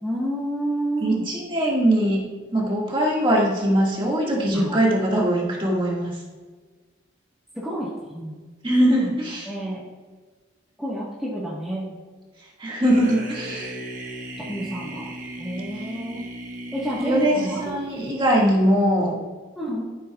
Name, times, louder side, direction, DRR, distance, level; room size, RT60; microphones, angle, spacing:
voice 1, 0.0-1.3 4.5-4.8 7.5-8.3 8.9-9.1 9.4-9.8 10.8-11.9 14.4-15.1 15.4-16.2 16.7-17.7 19.5-19.8, right 1 dB, 5° right, -8 dB, 1.4 m, -29 dB
voice 2, 1.0-2.2 2.5-6.2 8.6-9.4 12.6-13.7 17.0-19.2, right 1 dB, 25° right, -4 dB, 1.9 m, -21 dB
sound 1, 12.8-18.1, right 1 dB, 45° right, 1.2 m, -36 dB
13.5 x 8.0 x 2.4 m, 1.4 s
head